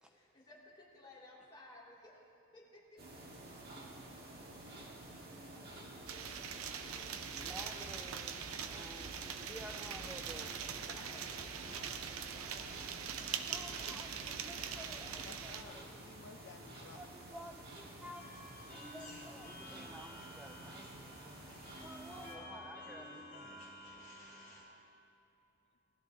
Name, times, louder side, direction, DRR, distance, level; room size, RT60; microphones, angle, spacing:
voice 1, 0.1-3.0 10.9-13.1 22.1-23.6, left 1 dB, 20° left, -6 dB, 3.0 m, -57 dB
sound 1, 3.0-22.4, right 1 dB, 50° right, 1.7 m, -51 dB
voice 2, 5.5-6.2 7.3-9.2 9.5-10.5 13.5-15.8 16.9-18.2 18.7-23.5, equal, 5° right, 3 dB, 0.4 m, -53 dB
sound 2, 6.1-15.6, right 7 dB, 90° right, 0.7 m, -43 dB
voice 3, 15.2-17.0, left 5 dB, 55° left, 4 dB, 0.6 m, -55 dB
sound 3, 18.1-24.6, left 1 dB, 40° left, 3.5 m, -52 dB
19.0 x 13.5 x 2.9 m, 2.9 s
head